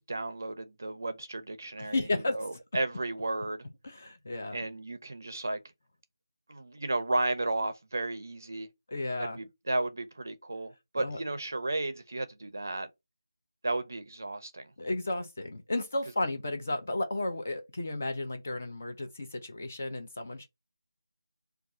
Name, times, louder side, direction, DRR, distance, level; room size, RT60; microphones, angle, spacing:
voice 1, 0.0-3.7 4.5-5.6 6.5-8.7 9.2-12.9 13.6-14.7, right 2 dB, 40° right, 0.5 m, -33 dB
voice 2, 1.9-2.4 3.8-4.6 8.9-9.4 11.0-11.2 14.8-20.5, left 2 dB, 25° left, 0.4 m, -33 dB
2.5 x 2.3 x 4.1 m
figure-of-eight pair, 180°, 2 cm